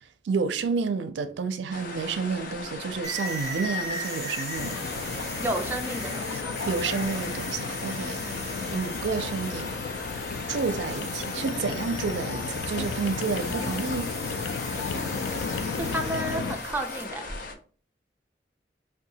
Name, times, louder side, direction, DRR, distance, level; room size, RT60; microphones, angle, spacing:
voice 1, 0.2-4.8 6.7-8.2 8.7-9.7 10.5-14.1, right 5 dB, 90° right, 0.4 m, -30 dB
sound 1, 1.7-17.5, left 3 dB, 50° left, 0.6 m, -38 dB
sound 2, 3.0-17.0, left 1 dB, 15° left, 1.0 m, -38 dB
sound 3, 4.6-16.6, left 5 dB, 85° left, 0.3 m, -34 dB
voice 2, 5.4-6.5 8.2-8.3 14.9-17.3, right 1 dB, 10° right, 0.4 m, -33 dB
2.7 x 2.3 x 4.0 m
head